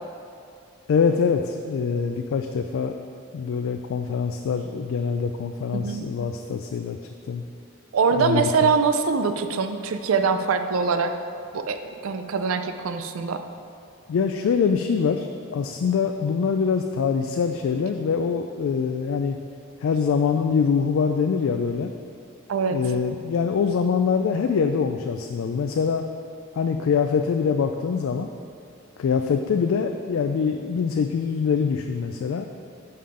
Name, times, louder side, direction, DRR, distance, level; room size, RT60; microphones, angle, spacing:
voice 1, 0.9-2.9 3.3-7.0 7.3-7.4 8.1-8.7 14.1-19.4 19.8-21.9 22.6-26.0 26.5-28.3 29.0-32.5, left 6 dB, 70° left, 6 dB, 0.3 m, -24 dB
voice 2, 5.7-6.0 7.9-11.1 11.5-11.8 12.0-13.4 22.5-22.8, right 5 dB, 75° right, 8 dB, 0.4 m, -23 dB
5.7 x 5.6 x 4.9 m, 2.4 s
head